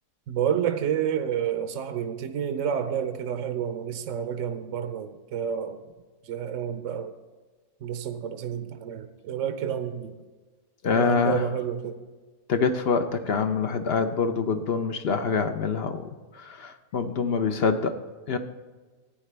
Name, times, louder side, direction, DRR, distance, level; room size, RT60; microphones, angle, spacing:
voice 1, 0.3-5.8 6.2-7.1 7.8-10.1 10.9-12.0, right 8 dB, 65° right, 9 dB, 0.9 m, -29 dB
voice 2, 10.8-11.5 12.5-17.9 18.3-18.4, left 5 dB, 55° left, 8 dB, 0.7 m, -25 dB
14.5 x 9.3 x 3.3 m, 1.3 s
omnidirectional pair, 1.7 m